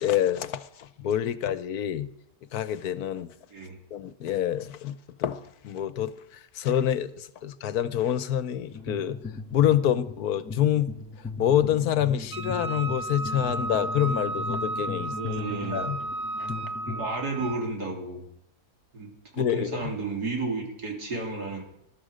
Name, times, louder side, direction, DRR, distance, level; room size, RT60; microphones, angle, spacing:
voice 1, 0.0-2.1 2.5-3.3 3.9-9.2 9.5-10.9 11.4-15.1 15.7-16.0 16.4-16.5 19.3-19.8, left 10 dB, 75° left, 1.2 m, -27 dB
sound 1, 8.7-17.1, left 4 dB, 10° left, 5.2 m, -38 dB
Wind instrument woodwind instrument, 12.3-17.7, right 2 dB, 35° right, 0.7 m, -33 dB
voice 2, 15.1-15.9 16.9-18.2 18.9-21.6, right 3 dB, 80° right, 3.7 m, -32 dB
20.5 x 12.5 x 5.0 m
omnidirectional pair, 1.7 m